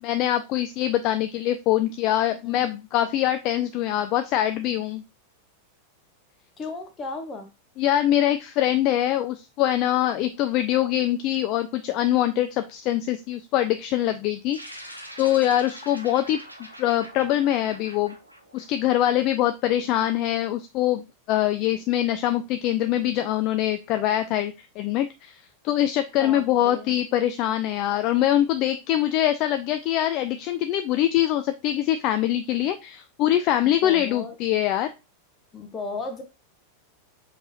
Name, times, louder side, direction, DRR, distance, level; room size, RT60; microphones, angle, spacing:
voice 1, 0.0-5.0 7.8-16.4 16.8-18.1 18.5-34.9, left 12 dB, 40° left, 9 dB, 0.3 m, -24 dB
voice 2, 6.6-7.5 10.1-10.4 26.2-27.0 33.8-34.3 35.5-36.2, left 3 dB, 20° left, 6 dB, 1.0 m, -35 dB
sound 1, 14.5-19.2, equal, 85° right, 0.8 m, -43 dB
5.2 x 3.2 x 2.6 m, 0.26 s
figure-of-eight pair, 90°, 0 cm